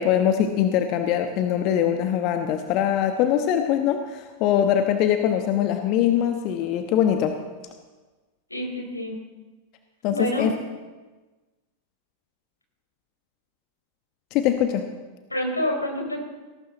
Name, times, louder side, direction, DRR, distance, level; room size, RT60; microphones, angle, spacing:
voice 1, 0.0-7.4 10.0-10.5 14.3-14.8, left 9 dB, 40° left, 6 dB, 1.2 m, -22 dB
voice 2, 8.5-9.2 10.1-10.5 15.3-16.2, left 1 dB, 85° left, 2 dB, 4.2 m, -27 dB
18.5 x 18.0 x 3.9 m, 1.3 s
figure-of-eight pair, 90°, 0 cm